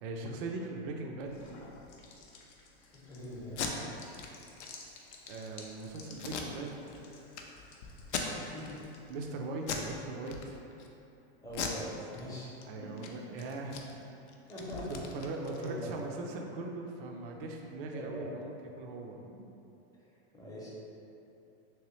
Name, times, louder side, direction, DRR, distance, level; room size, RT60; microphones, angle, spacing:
voice 1, 0.0-1.4 5.3-7.0 8.2-8.6 9.1-10.6 12.6-13.8 14.9-19.2, right 3 dB, 55° right, 1 dB, 0.5 m, -40 dB
sound 1, 1.2-9.3, left 3 dB, 40° left, 0.5 m, -54 dB
voice 2, 2.9-3.6 8.5-8.7 11.4-12.5 12.8-13.2 14.5-15.0 15.5-15.8 17.9-18.3 20.3-20.7, equal, 10° left, -8 dB, 0.8 m, -42 dB
Packing tape duct tape, 3.4-3.7 4.2-4.3 4.6-4.7 5.1-5.5 6.2-7.0 7.3-7.4 8.0-8.7 9.1-9.3 9.6-9.9 10.2-10.9 11.5-12.6 12.9-13.1 13.4-16.0, left 6 dB, 85° left, 0.5 m, -39 dB
3.2 x 3.1 x 3.0 m, 2.8 s
supercardioid pair, 130°, 33 cm